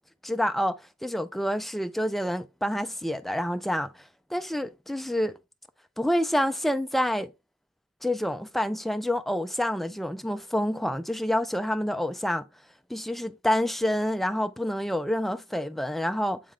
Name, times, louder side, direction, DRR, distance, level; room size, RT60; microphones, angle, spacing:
voice 1, 0.2-3.9 4.3-5.4 6.0-7.3 8.0-12.4 12.9-16.4, equal, ahead, 0.3 m, -28 dB
8.4 x 3.6 x 3.3 m
head